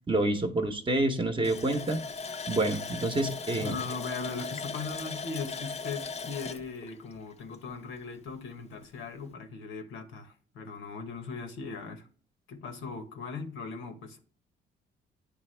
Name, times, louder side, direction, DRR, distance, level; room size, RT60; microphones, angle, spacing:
voice 1, 0.1-2.0 2.5-3.8, right 2 dB, 25° right, 0.8 m, -28 dB
Water tap faucet, 1.4-7.9 8.3-8.4 8.8-9.0, left 4 dB, 35° left, 0.5 m, -38 dB
voice 2, 3.6-12.1 12.5-14.2, left 4 dB, 90° left, 1.1 m, -39 dB
9.5 x 3.4 x 3.3 m
cardioid pair, 90°, 20 cm